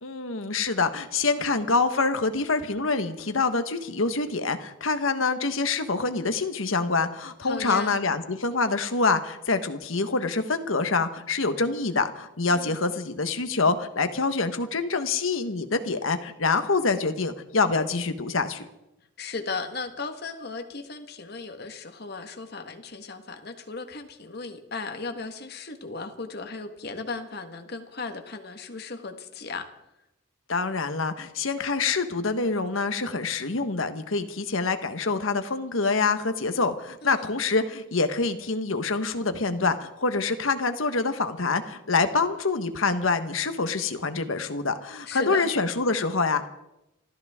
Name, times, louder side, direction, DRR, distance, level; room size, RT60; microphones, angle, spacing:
voice 1, 0.0-18.7 30.5-46.5, left 4 dB, 85° left, 8 dB, 1.3 m, -26 dB
voice 2, 7.4-8.0 12.5-12.9 19.2-29.7 37.0-37.4 45.1-45.5, left 4 dB, 50° left, 6 dB, 1.6 m, -36 dB
28.0 x 14.0 x 3.7 m, 0.90 s
head